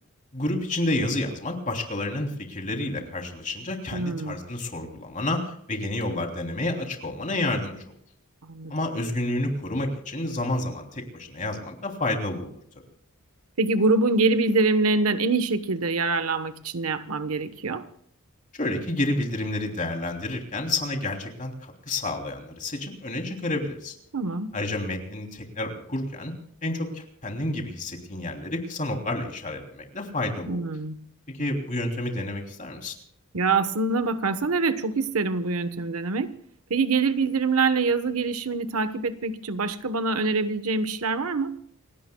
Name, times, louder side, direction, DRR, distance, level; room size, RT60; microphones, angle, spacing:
voice 1, 0.3-7.8 8.7-12.5 18.5-23.9 24.5-26.3 26.6-30.6 31.3-32.9, left 2 dB, 35° left, 3.1 m, -30 dB
voice 2, 3.9-4.4 8.4-8.7 13.6-17.8 24.1-24.5 30.5-31.0 33.3-36.3 36.7-41.5, right 3 dB, 75° right, 1.1 m, -25 dB
29.0 x 17.0 x 2.3 m
head